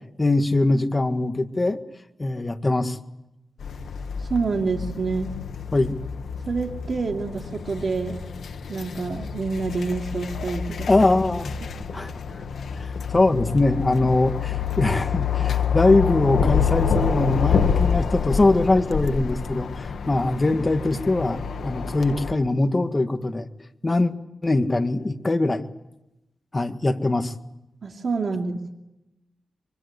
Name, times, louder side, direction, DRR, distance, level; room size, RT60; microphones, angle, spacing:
voice 1, 0.2-1.8 2.2-3.0 5.7-5.9 10.9-11.5 11.9-12.1 12.8-23.5 23.8-24.1 24.4-25.6 26.5-27.3, left 2 dB, 25° left, 7 dB, 1.8 m, -22 dB
sound 1, 3.6-22.3, left 7 dB, 90° left, 1.4 m, -27 dB
voice 2, 4.2-5.3 6.5-8.2 8.7-10.9 11.6-11.7 27.8-28.8, right 4 dB, 55° right, 2 dB, 2.8 m, -27 dB
24.5 x 24.5 x 8.3 m, 0.90 s
wide cardioid pair, 110°, 0 cm